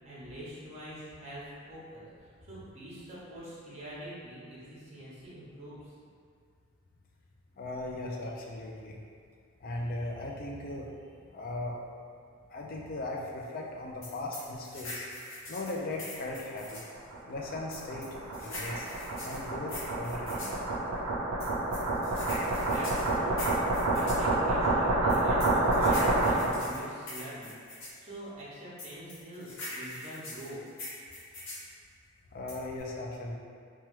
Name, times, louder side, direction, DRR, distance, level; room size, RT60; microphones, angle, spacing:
voice 1, 0.0-5.8 22.2-22.3 22.6-23.5 23.9-27.6 28.0-30.6, equal, 30° right, -8 dB, 0.7 m, -44 dB
voice 2, 7.6-9.0 9.6-10.9 11.3-11.8 12.5-15.0 15.5-16.8 17.3-18.9 19.2-20.6 32.3-33.3, left 2 dB, 40° left, -1 dB, 0.3 m, -38 dB
sound 1, 14.0-16.9 17.7-20.6 21.4-24.2 25.1-28.0 28.8-31.7 32.5-32.8, left 1 dB, 65° left, 0.9 m, -42 dB
sound 2, 16.7-26.7, right 2 dB, 80° right, 0.5 m, -28 dB
3.0 x 2.2 x 3.1 m, 2.2 s
head